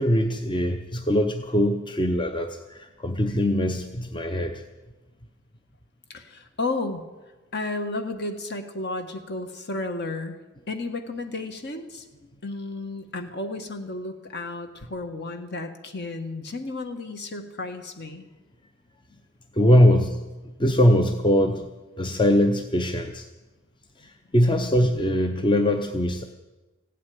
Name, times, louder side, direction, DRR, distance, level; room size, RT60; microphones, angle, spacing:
voice 1, 0.0-4.6 19.5-20.2 20.6-21.7 22.0-23.2 24.0-26.3, equal, 20° left, 6 dB, 0.8 m, -22 dB
voice 2, 6.1-7.0 7.5-10.4 10.7-12.1 12.4-18.3 24.6-24.9, left 2 dB, 50° left, 7 dB, 1.6 m, -33 dB
15.5 x 8.5 x 9.6 m, 1.2 s
head